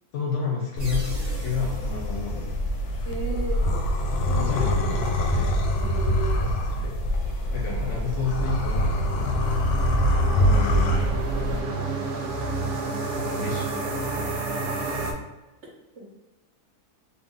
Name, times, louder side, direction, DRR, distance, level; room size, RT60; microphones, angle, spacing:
voice 1, 0.1-2.6 4.4-5.6 6.0-6.2 6.7-7.0 7.5-9.6 10.4-11.6 13.2-14.2, left 6 dB, 65° left, -2 dB, 0.8 m, -31 dB
sound 1, 0.8-11.6, equal, 85° left, 1.1 m, -24 dB
sound 2, 0.8-3.4, right 1 dB, 40° right, 0.3 m, -46 dB
voice 2, 3.0-3.6 4.3-4.9 5.8-6.5 11.2-12.0 14.5-15.3 16.0-16.1, right 2 dB, 60° right, -3 dB, 1.0 m, -37 dB
sound 3, 7.3-15.1, right 3 dB, 80° right, 1.1 m, -31 dB
3.3 x 2.2 x 3.6 m, 1.1 s
omnidirectional pair, 1.6 m